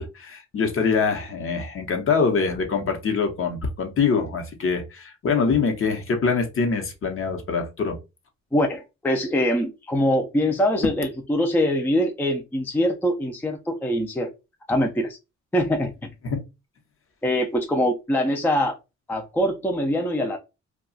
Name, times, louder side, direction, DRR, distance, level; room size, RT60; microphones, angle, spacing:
voice 1, 0.0-8.0 16.2-16.4, left 5 dB, 45° left, 0.9 m, -24 dB
voice 2, 8.5-14.3 14.7-15.2 15.5-15.9 17.2-18.8 19.1-20.4, equal, 5° left, 0.4 m, -23 dB
2.3 x 2.3 x 3.8 m
cardioid pair, 90°, 30 cm